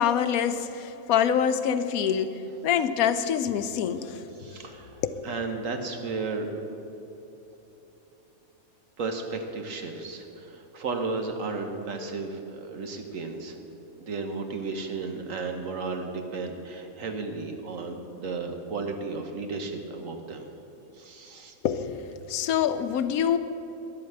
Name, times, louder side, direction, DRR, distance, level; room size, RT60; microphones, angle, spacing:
voice 1, 0.0-4.2 5.0-5.2 21.6-23.4, left 8 dB, 85° left, 11 dB, 1.1 m, -26 dB
voice 2, 4.4-5.0 5.2-6.5 9.0-13.6 14.0-20.5 20.9-21.5, right 4 dB, 65° right, 5 dB, 1.4 m, -34 dB
11.0 x 8.7 x 7.9 m, 3.0 s
omnidirectional pair, 1.5 m